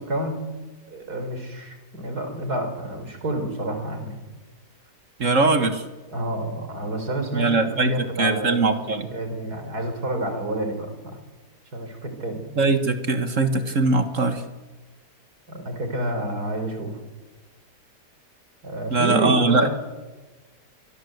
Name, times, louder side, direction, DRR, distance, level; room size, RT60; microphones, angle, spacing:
voice 1, 0.1-0.4 0.9-4.2 6.1-11.2 11.7-12.4 15.5-17.0 18.6-19.7, right 1 dB, 65° right, 6 dB, 4.9 m, -29 dB
voice 2, 5.2-5.8 7.3-7.9 8.2-9.1 12.6-14.4 18.9-19.7, right 3 dB, 50° right, 8 dB, 1.9 m, -21 dB
25.5 x 23.5 x 8.0 m, 1.2 s
omnidirectional pair, 1.8 m